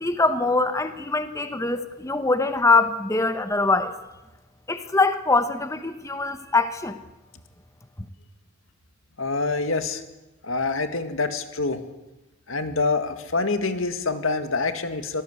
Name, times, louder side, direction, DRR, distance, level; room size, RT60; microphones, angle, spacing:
voice 1, 0.0-3.9 4.7-7.0, left 3 dB, 15° left, 9 dB, 1.0 m, -23 dB
voice 2, 9.2-10.0 10.4-11.8 12.5-15.2, left 3 dB, 90° left, 8 dB, 2.1 m, -26 dB
25.0 x 17.5 x 8.2 m, 1.0 s
head